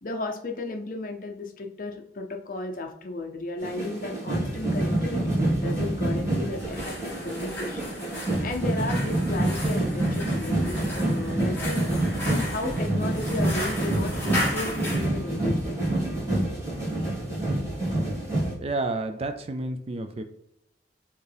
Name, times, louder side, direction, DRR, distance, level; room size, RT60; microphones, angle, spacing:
voice 1, 0.0-7.0 7.2-11.9 12.2-15.8, left 2 dB, 50° left, 3 dB, 0.6 m, -34 dB
sound 1, 3.6-18.5, right 1 dB, 15° right, 1.8 m, -27 dB
sound 2, 6.6-15.1, left 1 dB, 10° left, 1.6 m, -35 dB
voice 2, 18.6-20.2, right 2 dB, 35° right, 8 dB, 0.3 m, -30 dB
4.5 x 3.5 x 3.4 m, 0.81 s
head